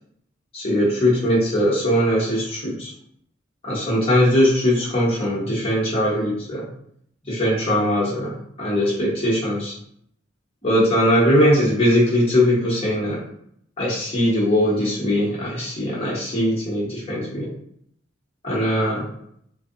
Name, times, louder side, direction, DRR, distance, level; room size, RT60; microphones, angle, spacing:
voice 1, 0.5-2.9 3.6-6.7 7.3-9.7 10.6-13.2 13.8-17.5 18.4-19.0, equal, 30° left, -7 dB, 0.9 m, -20 dB
2.6 x 2.2 x 2.5 m, 0.68 s
head